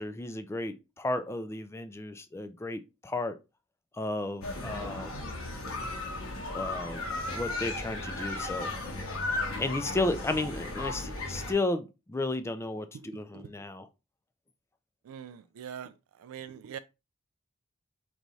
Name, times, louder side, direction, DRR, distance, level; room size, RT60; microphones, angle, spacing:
voice 1, 0.0-3.4 3.9-5.2 6.5-8.7 9.6-13.9, left 2 dB, 15° left, 0.3 m, -33 dB
sound 1, 4.4-11.5, left 2 dB, 85° left, 1.2 m, -35 dB
voice 2, 15.1-15.9 16.2-16.8, right 8 dB, 85° right, 0.3 m, -42 dB
4.7 x 3.0 x 2.6 m
head